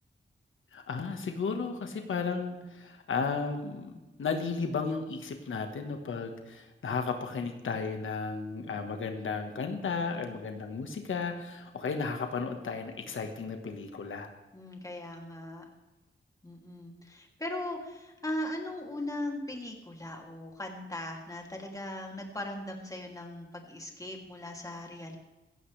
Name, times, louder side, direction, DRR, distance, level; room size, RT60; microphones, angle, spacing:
voice 1, 0.7-3.9 4.2-14.3, left 5 dB, 80° left, 5 dB, 1.5 m, -34 dB
voice 2, 14.5-15.6 16.4-25.2, left 1 dB, 15° left, 1 dB, 2.7 m, -39 dB
16.0 x 15.0 x 3.3 m, 1.1 s
wide cardioid pair, 100°, 20 cm